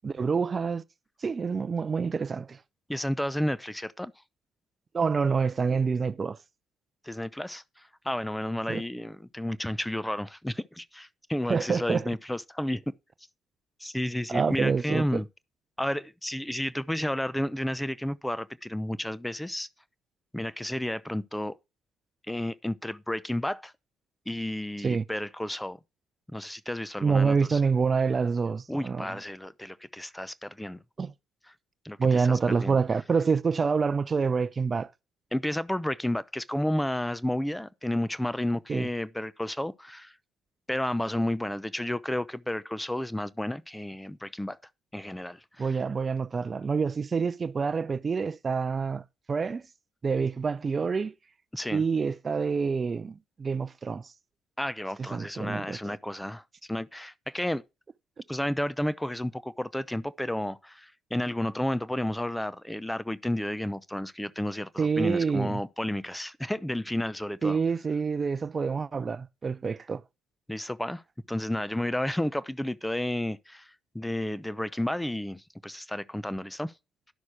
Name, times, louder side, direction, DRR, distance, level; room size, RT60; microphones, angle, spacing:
voice 1, 0.0-0.8 1.2-2.6 4.9-6.4 8.7-8.8 11.5-12.1 14.3-15.2 24.8-25.0 27.0-29.2 31.0-31.1 32.0-34.9 38.7-38.9 45.6-49.7 50.0-51.1 51.7-54.1 55.0-56.0 64.8-65.6 67.4-70.0, right 5 dB, 35° right, 0.6 m, -27 dB
voice 2, 2.9-4.1 7.0-12.8 13.8-15.3 15.8-19.7 20.3-21.6 22.3-23.7 24.3-25.8 26.3-27.6 28.7-30.8 31.8-32.8 35.3-40.1 40.7-44.6 44.9-45.8 51.5-51.8 54.6-56.4 56.7-57.6 58.3-67.6 70.5-71.0 71.3-76.7, left 1 dB, 5° left, 0.7 m, -32 dB
11.5 x 6.4 x 4.7 m
hypercardioid pair, 60°, 0 cm